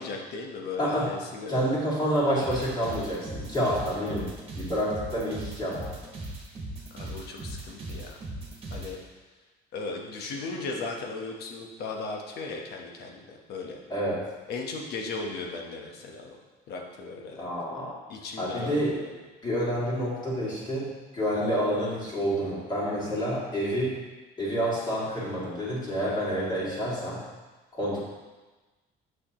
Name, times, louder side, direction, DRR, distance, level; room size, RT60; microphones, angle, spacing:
voice 1, 0.0-1.7 6.9-8.2 8.7-9.0 9.7-13.8 14.5-16.4 16.7-17.5 18.1-19.1, left 3 dB, 70° left, 1 dB, 1.1 m, -37 dB
voice 2, 0.8-1.1 1.5-6.0 13.9-14.3 17.4-18.0 18.4-19.0 19.4-24.0 24.4-27.2 27.7-28.0, equal, 25° left, -8 dB, 2.3 m, -28 dB
sound 1, 2.4-8.9, right 2 dB, 35° right, 1.5 m, -38 dB
6.7 x 6.3 x 3.0 m, 1.2 s
cardioid pair, 110°, 17 cm